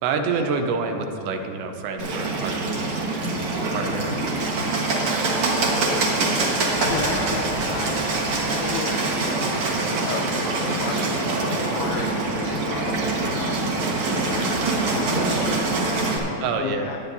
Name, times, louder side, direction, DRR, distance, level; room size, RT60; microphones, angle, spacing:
voice 1, 0.0-3.0 3.7-4.2 4.6-4.8 16.4-16.9, right 4 dB, 80° right, 4 dB, 2.9 m, -27 dB
Bird, 2.0-16.2, right 2 dB, 65° right, 1.8 m, -24 dB
Gurgling / Toilet flush, 3.5-7.5, left 1 dB, 5° right, 0.8 m, -41 dB
Wind instrument woodwind instrument, 3.6-11.1, left 5 dB, 40° right, 1.2 m, -43 dB
voice 2, 3.8-4.2 5.4-8.0 8.6-9.5 10.1-14.6 14.9-17.0, left 5 dB, 90° left, 2 dB, 2.1 m, -35 dB
19.0 x 10.5 x 2.7 m, 2.8 s
omnidirectional pair, 5.2 m